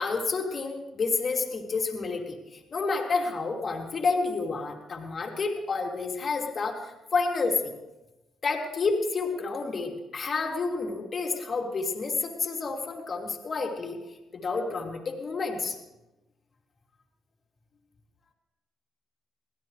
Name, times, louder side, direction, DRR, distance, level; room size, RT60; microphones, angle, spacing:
voice 1, 0.0-7.7 8.4-14.0 14.3-15.8, left 4 dB, 45° left, 1 dB, 3.1 m, -29 dB
23.5 x 16.5 x 3.3 m, 1.0 s
cardioid pair, 90°, 0 cm